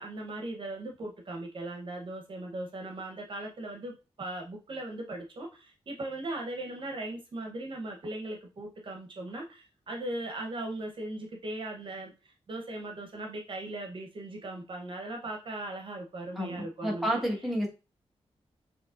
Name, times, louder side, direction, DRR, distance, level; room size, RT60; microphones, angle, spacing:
voice 1, 0.0-17.2, right 2 dB, 50° right, 1 dB, 0.8 m, -38 dB
voice 2, 16.3-17.7, equal, ahead, -2 dB, 1.3 m, -30 dB
6.9 x 2.9 x 2.4 m, 0.31 s
wide cardioid pair, 140°, 11 cm